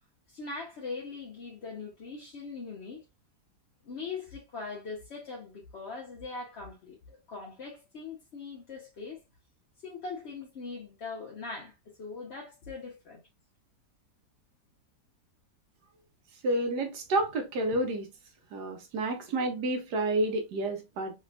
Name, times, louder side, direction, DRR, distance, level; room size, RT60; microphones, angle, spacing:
voice 1, 0.3-3.0 3.8-9.2 9.8-13.2, left 4 dB, 55° left, 0.8 m, -41 dB
voice 2, 16.4-18.1 18.5-21.1, right 2 dB, 80° right, 1.4 m, -29 dB
3.3 x 2.8 x 2.3 m
omnidirectional pair, 1.8 m